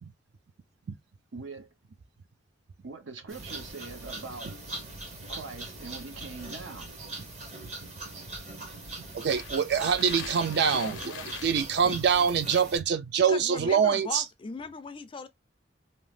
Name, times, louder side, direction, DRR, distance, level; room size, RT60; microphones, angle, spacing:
voice 1, 1.3-1.7 2.8-4.5 5.3-6.9 10.7-11.4, right 4 dB, 80° right, 0.7 m, -42 dB
sound 1, 3.3-12.8, right 2 dB, 35° right, 0.8 m, -41 dB
sound 2, 3.5-3.6 3.9-4.2 4.9-5.0 5.5-5.6 6.3-6.9 7.3-7.7 8.0-8.1 8.6-8.8 9.3-11.6, left 7 dB, 80° left, 0.5 m, -43 dB
voice 2, 9.1-11.0 11.4-14.2, right 6 dB, 55° right, 0.4 m, -24 dB
voice 3, 13.3-15.3, left 4 dB, 25° left, 0.3 m, -38 dB
2.7 x 2.0 x 3.2 m
head